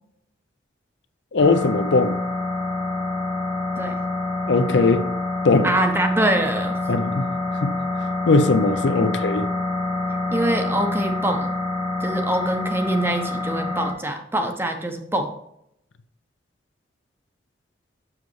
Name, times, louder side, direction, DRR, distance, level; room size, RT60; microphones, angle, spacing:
voice 1, 1.3-2.2 4.5-5.0 5.4-5.7 6.9-7.3 7.6-7.7 8.3-9.5, left 3 dB, 70° left, 11 dB, 0.5 m, -19 dB
sound 1, 1.4-13.9, left 2 dB, 85° left, 1.6 m, -26 dB
voice 2, 5.6-6.8 9.0-9.1 10.3-11.5 12.0-15.3, right 1 dB, 10° right, 5 dB, 0.6 m, -24 dB
7.3 x 6.4 x 3.1 m, 0.77 s
head